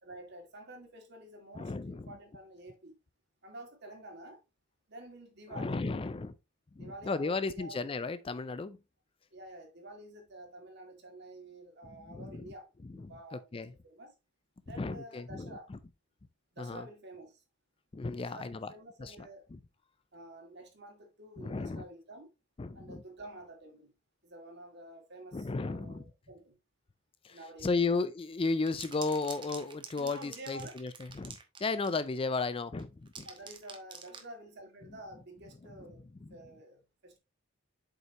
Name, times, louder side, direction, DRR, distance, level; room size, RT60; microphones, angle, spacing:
voice 1, 0.0-3.0 3.4-4.4 4.9-5.8 6.7-7.9 9.3-14.1 14.6-15.7 16.5-17.4 18.2-19.5 20.1-22.3 22.7-23.9 24.2-26.5 27.3-27.9 29.9-30.7 33.2-36.0 36.3-37.2, right 1 dB, 55° right, 2.3 m, -49 dB
voice 2, 1.6-2.1 5.5-6.3 6.8-8.8 12.1-12.5 13.3-13.7 14.8-15.8 16.6-16.9 17.9-18.7 19.0-19.6 21.4-21.8 22.6-23.0 25.3-26.0 27.2-33.3 35.8-35.9 36.2-36.4, left 3 dB, 25° left, 0.4 m, -34 dB
sound 1, 28.5-32.1 32.8-34.3, right 5 dB, 25° right, 1.2 m, -47 dB
7.7 x 5.5 x 2.9 m
head